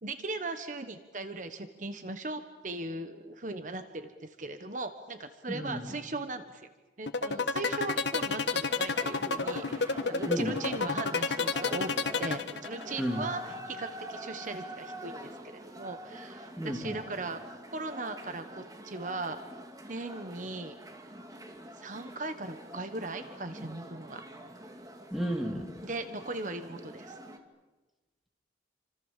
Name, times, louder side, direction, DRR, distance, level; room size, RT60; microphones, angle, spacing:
voice 1, 0.0-6.7 7.0-11.9 12.2-17.4 17.7-19.4 19.9-20.7 21.8-24.2 25.8-27.2, right 2 dB, 45° right, 8 dB, 1.3 m, -38 dB
voice 2, 5.5-5.8 10.3-10.5 13.0-13.2 16.6-17.0 25.1-25.7, equal, ahead, 2 dB, 3.1 m, -32 dB
sound 1, 7.1-13.0, left 4 dB, 85° left, 1.4 m, -29 dB
sound 2, 8.9-27.4, right 1 dB, 20° right, 2.3 m, -45 dB
29.0 x 26.0 x 7.5 m, 1.2 s
head